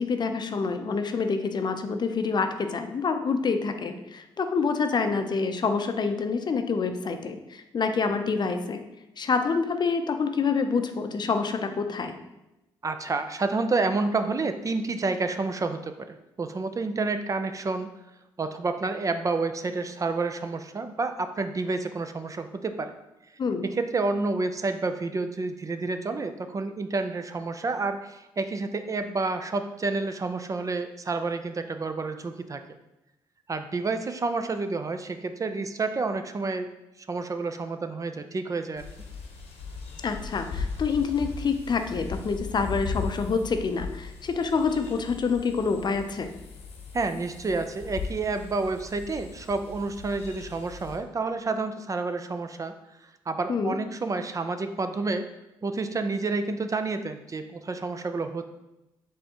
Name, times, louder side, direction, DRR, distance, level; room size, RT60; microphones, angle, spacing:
voice 1, 0.0-8.8 9.2-12.2 23.4-23.7 40.0-46.3 53.5-53.7, left 5 dB, 45° left, 7 dB, 0.5 m, -27 dB
voice 2, 12.8-17.9 18.4-22.9 23.7-32.6 33.5-36.7 37.1-38.8 46.9-52.7 53.3-55.3 55.6-58.5, right 3 dB, 30° right, 8 dB, 0.4 m, -29 dB
sound 1, 38.8-51.0, left 5 dB, 80° left, 0.9 m, -38 dB
5.2 x 3.4 x 2.9 m, 0.97 s
supercardioid pair, 55°, 11 cm